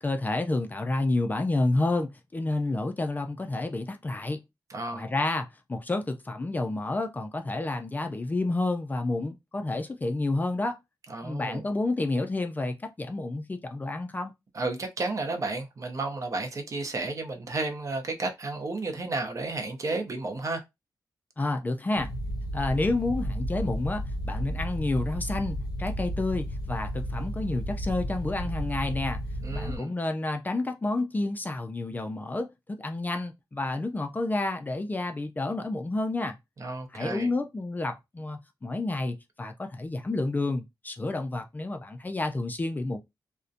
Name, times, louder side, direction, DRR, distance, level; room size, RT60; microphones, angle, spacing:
voice 1, 0.0-4.4 4.9-10.8 11.2-14.3 21.4-22.1 22.5-29.2 29.5-32.5 32.8-36.4 36.9-43.0, left 2 dB, 25° left, 0.4 m, -30 dB
voice 2, 4.7-5.1 11.1-11.6 14.5-20.6 29.4-29.9 36.6-37.3, right 3 dB, 45° right, 0.6 m, -32 dB
sound 1, 22.0-29.8, equal, 65° left, 0.7 m, -33 dB
2.6 x 2.1 x 2.4 m
cardioid pair, 90°, 7 cm